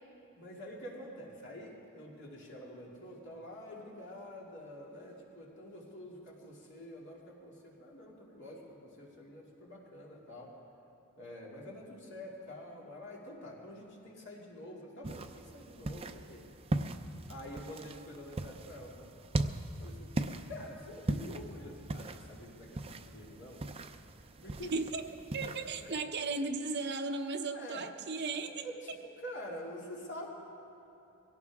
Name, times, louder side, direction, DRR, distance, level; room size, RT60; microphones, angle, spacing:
voice 1, 0.4-10.5 11.2-16.4 17.3-19.2 19.8-20.1 20.4-23.6 24.4-24.7 25.8-26.0 27.5-27.8 28.6-30.3, left 1 dB, 55° left, -3 dB, 2.7 m, -47 dB
sound 1, 15.0-26.0, right 2 dB, 25° right, 0.5 m, -39 dB
voice 2, 24.7-25.1 25.3-28.7, right 3 dB, 50° right, 5 dB, 0.9 m, -36 dB
22.5 x 17.0 x 3.6 m, 2.9 s
head